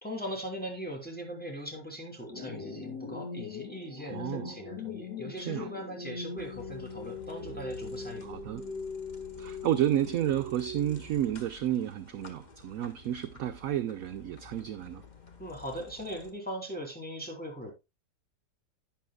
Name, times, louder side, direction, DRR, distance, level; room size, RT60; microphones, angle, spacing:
voice 1, 0.0-8.3 15.4-17.7, equal, 5° left, 2.9 m, -40 dB
sound 1, 2.3-11.3, left 4 dB, 70° left, 2.8 m, -41 dB
voice 2, 4.1-4.6 5.5-5.7 8.2-8.6 9.4-15.0, right 11 dB, 65° right, 0.9 m, -31 dB
sound 2, 6.4-16.3, left 1 dB, 30° left, 1.0 m, -51 dB
11.5 x 9.2 x 2.3 m
omnidirectional pair, 1.8 m